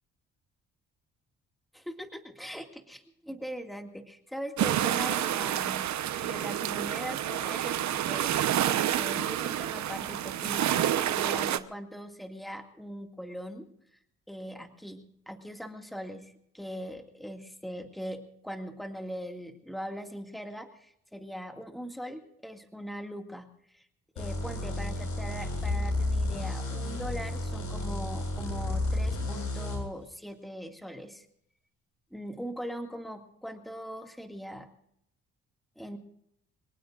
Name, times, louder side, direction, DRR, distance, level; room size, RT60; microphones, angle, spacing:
voice 1, 1.7-5.9 6.2-14.0 14.3-23.9 24.2-31.3 32.1-34.7 35.8-36.0, equal, ahead, 4 dB, 2.1 m, -41 dB
sound 1, 4.6-11.6, right 11 dB, 65° right, 1.0 m, -29 dB
sound 2, 24.2-29.8, left 2 dB, 85° left, 7.4 m, -31 dB
26.5 x 18.5 x 2.5 m, 0.74 s
cardioid pair, 90°, 30 cm